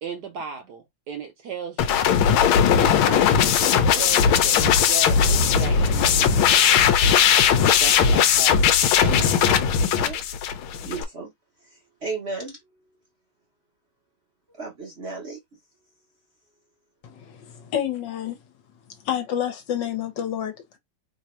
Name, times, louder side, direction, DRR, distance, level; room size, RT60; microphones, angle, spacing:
voice 1, 0.0-2.1 2.8-3.4 3.7-6.5 7.8-9.6, right 5 dB, 65° right, 1.0 m, -36 dB
sound 1, 1.8-11.0, left 7 dB, 80° left, 1.5 m, -18 dB
voice 2, 10.8-11.3 11.6-13.0 14.5-15.4, right 4 dB, 45° right, 0.9 m, -35 dB
voice 3, 17.0-18.4 19.0-20.8, left 10 dB, 65° left, 1.5 m, -29 dB
3.4 x 2.6 x 4.3 m
omnidirectional pair, 2.2 m